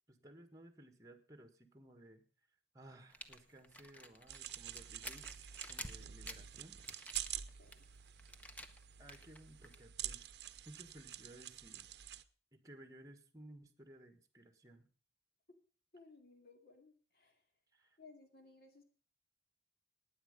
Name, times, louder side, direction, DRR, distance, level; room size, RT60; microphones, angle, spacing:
voice 1, 0.1-2.3 2.7-6.8 9.0-10.3 10.6-11.9 12.5-14.9 17.7-18.0, right 1 dB, 20° right, 7 dB, 1.6 m, -58 dB
sound 1, 3.1-9.8, left 1 dB, 10° left, 0.9 m, -51 dB
sound 2, 4.3-12.2, right 11 dB, 70° right, 0.7 m, -47 dB
voice 2, 7.6-7.9 15.5-15.6 15.9-17.4 18.0-18.8, left 3 dB, 55° left, 4 dB, 2.6 m, -61 dB
15.5 x 9.7 x 5.3 m, 0.40 s
head